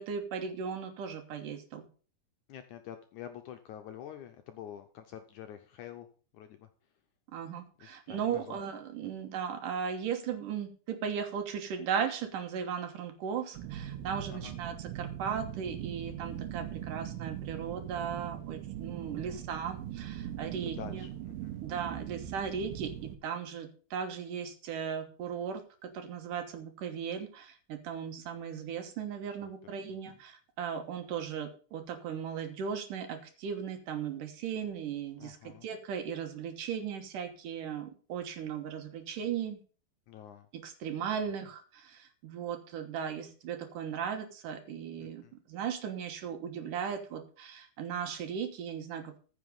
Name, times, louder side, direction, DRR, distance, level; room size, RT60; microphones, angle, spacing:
voice 1, 0.0-1.9 7.3-21.0 21.6-39.6 40.5-45.2 45.5-49.2, right 7 dB, 70° right, 6 dB, 2.7 m, -37 dB
voice 2, 2.5-6.1 6.3-6.7 7.8-8.6 14.3-14.5 19.0-19.4 20.8-21.6 29.3-29.5 35.2-35.7 40.1-40.5 45.2-45.3, left 10 dB, 75° left, 7 dB, 1.9 m, -47 dB
sound 1, 13.5-23.2, right 11 dB, 90° right, 2.6 m, -40 dB
14.5 x 6.1 x 5.4 m, 0.39 s
omnidirectional pair, 4.2 m